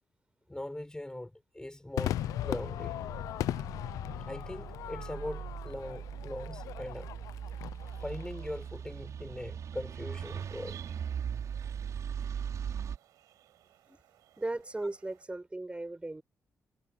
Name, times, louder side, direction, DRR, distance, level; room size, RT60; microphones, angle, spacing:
voice 1, 0.5-2.2 2.4-3.0 4.3-7.1 8.0-10.8 12.2-12.3, left 1 dB, 15° left, 4.2 m, -41 dB
Crowd / Fireworks, 2.0-8.5, left 13 dB, 85° left, 0.6 m, -38 dB
sound 1, 2.2-13.0, right 8 dB, 65° right, 5.3 m, -40 dB
sound 2, 10.2-15.2, right 13 dB, 85° right, 7.2 m, -59 dB
voice 2, 14.4-16.2, right 2 dB, 20° right, 6.2 m, -37 dB
supercardioid pair, 50°, 6 cm